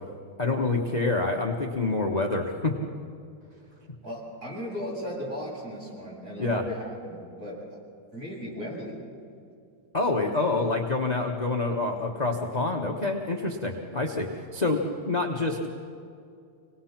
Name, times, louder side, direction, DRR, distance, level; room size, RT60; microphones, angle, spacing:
voice 1, 0.4-2.8 6.4-6.6 9.9-15.7, left 3 dB, 25° left, 1 dB, 1.1 m, -27 dB
voice 2, 4.0-7.7 8.1-9.0, equal, 50° right, -5 dB, 8.0 m, -36 dB
26.0 x 19.0 x 5.9 m, 2.4 s
omnidirectional pair, 2.2 m